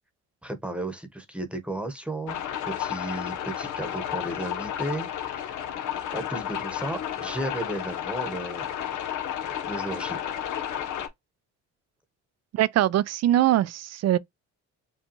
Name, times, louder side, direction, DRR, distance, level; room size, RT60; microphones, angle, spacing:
voice 1, 0.4-2.4 2.7-5.6 6.1-8.7 9.4-10.2, right 1 dB, 5° right, 1.0 m, -34 dB
sound 1, 2.3-11.1, left 10 dB, 80° left, 0.9 m, -32 dB
voice 2, 12.5-14.2, right 13 dB, 60° right, 0.4 m, -22 dB
5.2 x 2.3 x 2.9 m
cardioid pair, 90°, 30 cm